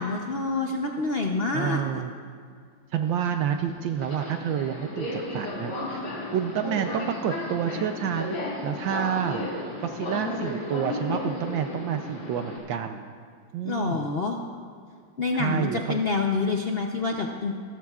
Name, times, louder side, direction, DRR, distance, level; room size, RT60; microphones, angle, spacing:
voice 1, 0.0-2.0 13.6-14.4 15.2-17.5, left 3 dB, 70° left, 1 dB, 0.5 m, -27 dB
voice 2, 1.5-2.1 2.9-6.1 6.3-9.5 9.8-13.1 13.5-14.1 15.3-16.0, right 8 dB, 80° right, 6 dB, 1.3 m, -29 dB
Subway metro underground, 3.0-12.6, left 2 dB, 90° left, 4.5 m, -34 dB
27.5 x 13.5 x 2.4 m, 2.1 s
omnidirectional pair, 2.1 m